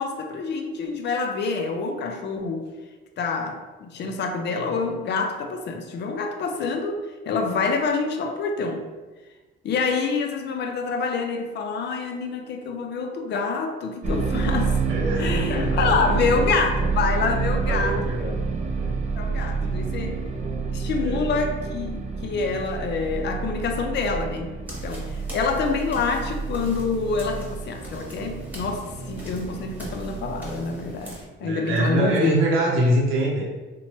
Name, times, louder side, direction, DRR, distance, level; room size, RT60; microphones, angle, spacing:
voice 1, 0.0-2.6 3.2-8.9 9.6-14.8 15.2-18.3 19.2-20.2 20.7-24.5 24.8-32.3, left 4 dB, 60° left, 4 dB, 0.5 m, -27 dB
sound 1, 14.0-31.0, right 4 dB, 35° right, 0.4 m, -28 dB
voice 2, 14.9-15.9 17.7-18.4 18.8-19.0 19.6-19.8 21.0-21.3 31.4-33.4, right 1 dB, 90° right, -3 dB, 0.6 m, -24 dB
sound 2, 24.6-31.2, equal, 10° right, 1.0 m, -41 dB
2.9 x 2.2 x 3.0 m, 1.2 s
cardioid pair, 90°, 20 cm